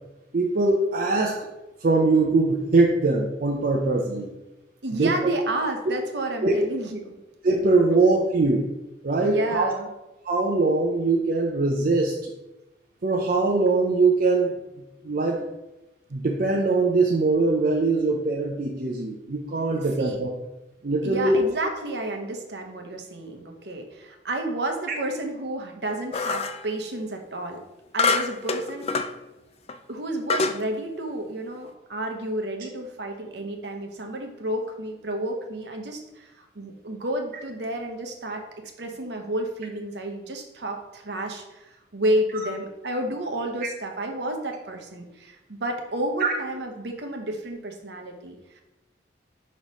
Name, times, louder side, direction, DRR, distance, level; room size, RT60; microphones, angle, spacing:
voice 1, 0.3-1.5 1.8-4.3 4.9-5.3 6.4-6.5 7.4-8.6 9.0-9.7 10.2-12.3 13.0-14.5 15.0-15.4 16.1-20.3 20.8-21.4 42.3-42.4 46.2-46.3, right 3 dB, 55° right, 0 dB, 0.6 m, -22 dB
voice 2, 4.8-7.2 9.2-9.9 19.7-20.2 21.0-27.6 27.9-29.2 29.9-48.6, right 1 dB, 70° right, 3 dB, 0.9 m, -31 dB
sound 1, 26.1-26.7 28.0-29.1 29.7-29.8 30.3-30.6, left 4 dB, 35° left, 0.3 m, -25 dB
5.9 x 3.1 x 5.3 m, 1.0 s
head